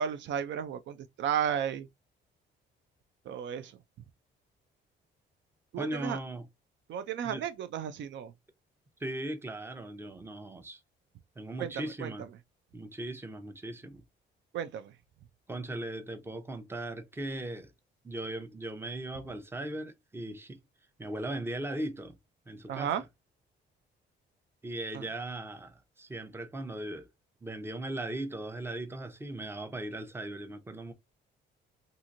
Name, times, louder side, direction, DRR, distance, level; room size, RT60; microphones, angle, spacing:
voice 1, 0.0-1.9 3.3-3.8 5.7-6.2 6.9-8.3 11.6-12.1 14.5-15.0 22.7-23.0 24.9-25.1, right 8 dB, 70° right, 0.4 m, -33 dB
voice 2, 5.8-6.5 7.2-7.4 9.0-10.8 11.4-12.3 12.7-14.0 15.5-17.7 18.0-20.6 21.0-22.2 22.5-22.9 24.6-27.1 27.4-30.9, right 1 dB, 10° right, 0.6 m, -38 dB
2.8 x 2.5 x 2.5 m
cardioid pair, 90°, 20 cm